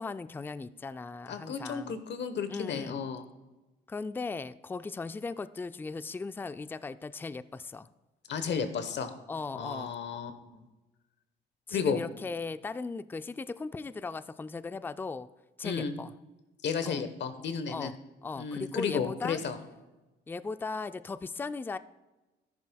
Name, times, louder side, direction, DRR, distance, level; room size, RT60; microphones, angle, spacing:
voice 1, 0.0-2.0 2.5-3.0 3.9-7.9 9.3-10.0 11.7-15.3 15.6-16.1 16.8-17.0 17.7-17.9 18.2-19.4 20.3-21.8, left 4 dB, 10° left, 13 dB, 0.3 m, -37 dB
voice 2, 1.3-3.2 8.3-9.1 9.5-10.6 11.7-12.0 15.6-15.9 16.6-17.9 18.4-19.6, left 6 dB, 65° left, 10 dB, 1.1 m, -33 dB
13.5 x 10.5 x 2.3 m, 1.1 s
cardioid pair, 90°, 20 cm